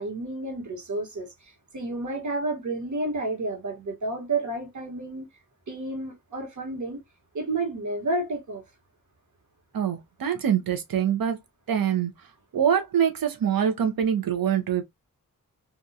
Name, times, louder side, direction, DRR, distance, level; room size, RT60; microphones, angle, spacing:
voice 1, 0.0-1.3 1.7-5.3 5.7-7.0 7.3-8.6, right 2 dB, 55° right, 1.5 m, -30 dB
voice 2, 9.7-11.4 11.7-12.1 12.5-14.8, right 8 dB, 75° right, 0.8 m, -24 dB
2.7 x 2.3 x 2.6 m
cardioid pair, 55°, 35 cm